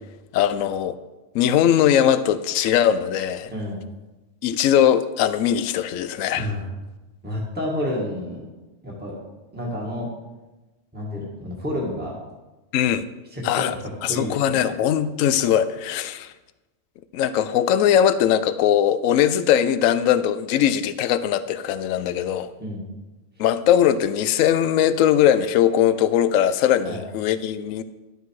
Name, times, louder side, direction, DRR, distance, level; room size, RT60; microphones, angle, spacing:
voice 1, 0.3-1.0 1.3-3.5 4.4-6.5 12.7-13.0 13.4-13.7 14.0-16.3 17.1-22.5 23.4-27.8, left 10 dB, 85° left, 13 dB, 1.0 m, -20 dB
voice 2, 3.5-3.8 6.3-6.7 7.2-8.5 8.8-9.2 9.5-10.1 10.9-12.2 13.3-14.8 22.6-22.8 23.4-23.5 26.8-27.0, left 1 dB, 5° right, -3 dB, 1.9 m, -30 dB
11.5 x 6.6 x 4.8 m, 1.1 s
omnidirectional pair, 1.3 m